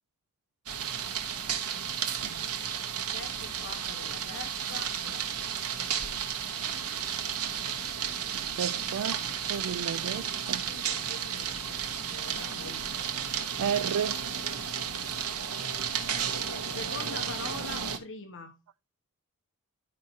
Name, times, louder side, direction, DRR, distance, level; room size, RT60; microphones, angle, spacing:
sound 1, 0.7-18.0, right 8 dB, 90° right, 1.4 m, -33 dB
voice 1, 3.1-5.7 10.3-12.8 16.7-18.6, left 3 dB, 60° left, 1.2 m, -44 dB
sound 2, 6.6-15.4, equal, 10° left, 4.7 m, -54 dB
voice 2, 8.3-9.2 9.5-10.7 13.6-14.3, right 7 dB, 75° right, 0.4 m, -33 dB
11.5 x 5.5 x 2.9 m
head